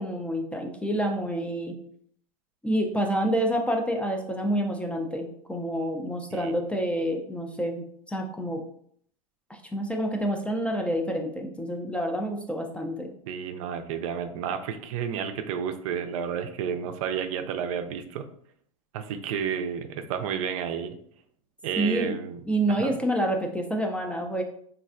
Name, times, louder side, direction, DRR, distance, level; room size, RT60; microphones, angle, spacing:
voice 1, 0.0-1.7 2.6-8.6 9.5-13.1 21.8-22.2 22.5-24.4, right 1 dB, 5° left, 3 dB, 0.3 m, -28 dB
voice 2, 13.3-18.3 18.9-21.0 21.6-22.4 22.7-23.0, right 7 dB, 65° right, 8 dB, 0.4 m, -31 dB
3.1 x 2.5 x 2.4 m, 0.63 s
hypercardioid pair, 110°, 19 cm